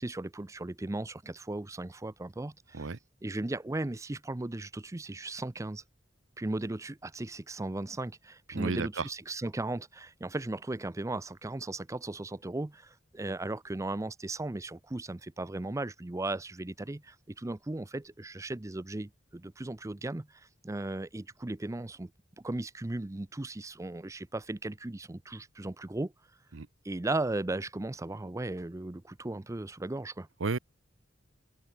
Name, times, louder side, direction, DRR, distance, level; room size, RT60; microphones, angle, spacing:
voice 1, 0.0-2.9 3.2-5.8 6.4-22.1 22.4-26.1 26.8-30.3, right 2 dB, 15° right, 0.5 m, -36 dB
voice 2, 8.5-9.1 26.5-26.7 30.4-30.6, right 4 dB, 70° right, 0.8 m, -32 dB
head